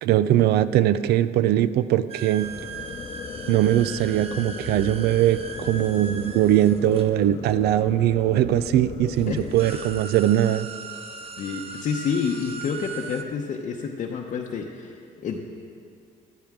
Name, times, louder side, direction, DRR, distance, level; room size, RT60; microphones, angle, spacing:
voice 1, 0.0-2.5 3.5-10.7, right 12 dB, 70° right, 14 dB, 0.4 m, -21 dB
sound 1, 2.1-7.8 8.7-8.8 9.1-13.2, right 4 dB, 35° right, 0.9 m, -39 dB
sound 2, 2.4-10.0, left 7 dB, 30° left, 0.4 m, -37 dB
voice 2, 11.4-15.4, left 6 dB, 50° left, -1 dB, 0.8 m, -29 dB
13.5 x 12.0 x 3.6 m, 2.4 s
cardioid pair, 110°, 17 cm